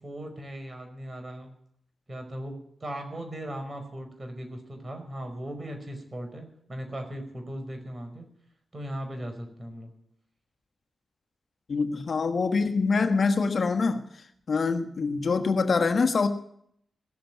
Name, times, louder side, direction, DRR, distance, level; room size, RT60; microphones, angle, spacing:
voice 1, 0.0-1.5 2.1-2.5 2.8-8.3 8.7-9.9, right 1 dB, 40° right, 5 dB, 5.2 m, -38 dB
voice 2, 11.7-14.0 14.5-16.3, left 4 dB, 60° left, 8 dB, 1.4 m, -24 dB
18.0 x 7.7 x 9.3 m, 0.68 s
supercardioid pair, 40°, 0 cm